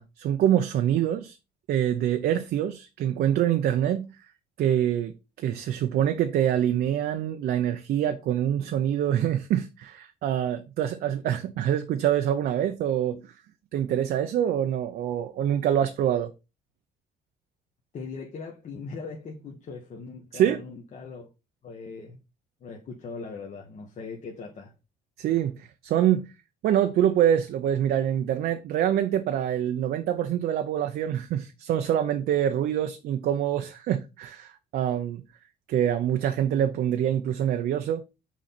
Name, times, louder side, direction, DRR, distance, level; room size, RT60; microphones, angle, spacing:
voice 1, 0.0-1.4 1.7-4.1 4.6-13.3 13.7-16.3 20.3-20.6 25.2-26.3 26.6-35.2 35.7-38.0, right 10 dB, 65° right, 0.7 m, -25 dB
voice 2, 17.9-21.3 21.6-22.2 22.6-24.7, left 4 dB, 45° left, 1.3 m, -40 dB
6.2 x 3.8 x 4.3 m
cardioid pair, 110°, 17 cm